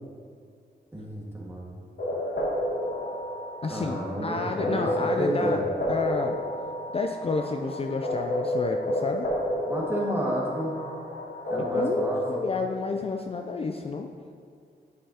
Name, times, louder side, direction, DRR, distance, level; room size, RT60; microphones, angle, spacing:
voice 1, 0.9-1.8 3.7-5.7 9.7-10.7 11.5-12.5, right 1 dB, 15° right, -4 dB, 1.7 m, -31 dB
sound 1, 2.0-12.3, left 1 dB, 70° left, 1.6 m, -30 dB
voice 2, 3.6-5.6 5.9-6.4 6.9-9.3 11.6-14.1, left 4 dB, 35° left, 4 dB, 0.4 m, -30 dB
10.0 x 5.4 x 2.8 m, 2.2 s
cardioid pair, 80°, 17 cm